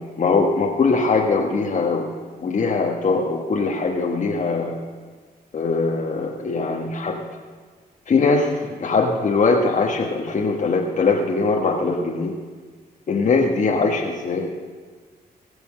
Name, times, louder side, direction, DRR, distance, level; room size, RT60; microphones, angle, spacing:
voice 1, 0.2-2.1 2.4-4.7 5.5-7.2 8.1-12.4 13.1-14.5, left 4 dB, 45° left, -1 dB, 1.3 m, -21 dB
19.5 x 7.0 x 6.5 m, 1.5 s
cardioid pair, 95°, 17 cm